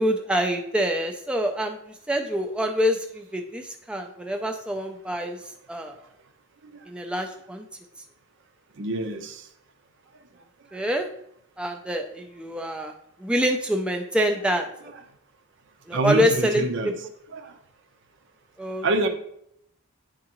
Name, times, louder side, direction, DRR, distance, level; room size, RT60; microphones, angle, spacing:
voice 1, 0.0-1.8 2.1-5.4 5.7-6.0 6.9-7.7 10.7-11.1 11.6-12.9 13.2-14.7 15.9-16.9 18.6-18.9, equal, 5° right, 3 dB, 0.4 m, -26 dB
voice 2, 8.8-9.4 15.9-16.9 17.3-17.5 18.8-19.1, right 2 dB, 60° right, 6 dB, 0.7 m, -26 dB
9.7 x 3.7 x 3.0 m, 0.71 s
head